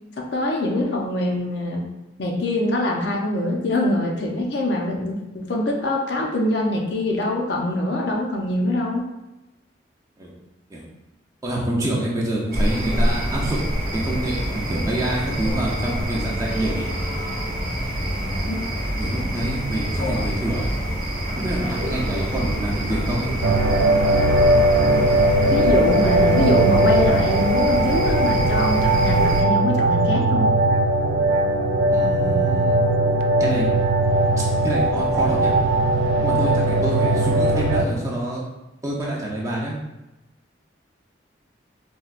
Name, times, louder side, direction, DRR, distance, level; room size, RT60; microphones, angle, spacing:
voice 1, 0.2-1.8 2.2-9.1 18.4-18.6 20.0-20.2 25.5-30.5, left 1 dB, 60° left, 0 dB, 0.5 m, -24 dB
voice 2, 11.4-13.6 13.9-16.9 19.0-20.7 21.4-23.3 31.9-32.9 33.4-33.7 34.6-35.5 36.2-38.4 38.8-39.8, right 1 dB, 15° right, -4 dB, 0.5 m, -26 dB
sound 1, 12.5-29.4, equal, 50° right, 0.8 m, -26 dB
sound 2, 23.4-37.8, right 1 dB, 90° right, 0.3 m, -19 dB
4.2 x 2.1 x 2.4 m, 1.0 s
head